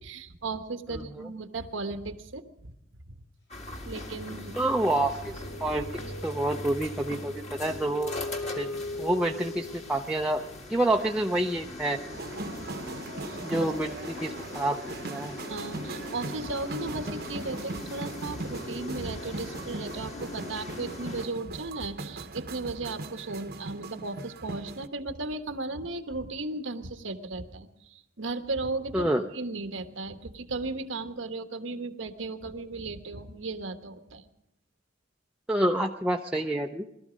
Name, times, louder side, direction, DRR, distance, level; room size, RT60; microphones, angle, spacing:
voice 1, 0.0-2.7 3.9-4.6 13.2-13.4 15.5-29.1 29.3-34.3, right 3 dB, 90° right, 8 dB, 1.3 m, -36 dB
voice 2, 0.9-1.3 4.6-5.8 6.2-8.1 8.6-8.7 9.0-10.4 10.7-12.0 13.4-14.8 15.1-15.3 28.9-29.3 35.5-36.8, right 1 dB, 5° right, 1 dB, 0.6 m, -28 dB
sound 1, 3.5-21.3, left 2 dB, 35° left, 1.9 m, -41 dB
sound 2, 4.9-10.1 12.0-12.1 12.3-17.8, left 1 dB, 65° left, 7.2 m, -42 dB
sound 3, 12.1-24.9, right 3 dB, 55° right, 0.9 m, -40 dB
20.0 x 13.0 x 5.1 m, 0.81 s
head